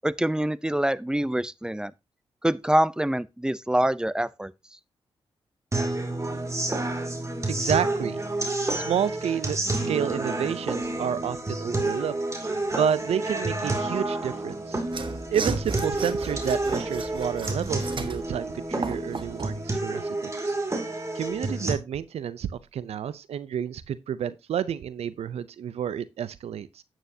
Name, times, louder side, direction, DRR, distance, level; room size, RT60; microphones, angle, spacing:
voice 1, 0.0-1.9 2.4-4.5, right 1 dB, 5° right, 0.6 m, -25 dB
sound 1, 5.7-21.7, right 2 dB, 30° right, 2.6 m, -29 dB
voice 2, 7.5-8.2 8.7-12.1 12.7-14.8 15.3-20.5 21.1-26.8, right 8 dB, 80° right, 0.5 m, -30 dB
Mechanisms / Sawing, 14.9-19.6, right 4 dB, 50° right, 1.4 m, -35 dB
9.0 x 8.8 x 2.8 m
cardioid pair, 45°, 11 cm